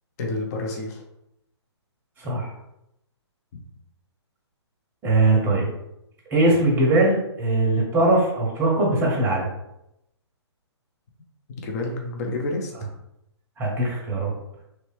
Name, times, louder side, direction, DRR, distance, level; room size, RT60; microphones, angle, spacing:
voice 1, 0.2-1.0 3.5-3.6 11.6-12.7, left 2 dB, 35° left, 2 dB, 0.7 m, -29 dB
voice 2, 2.2-2.5 5.0-5.7 6.3-9.5 13.6-14.3, right 2 dB, 15° right, -2 dB, 0.8 m, -21 dB
3.1 x 2.7 x 3.2 m, 0.83 s
hypercardioid pair, 145°, 15 cm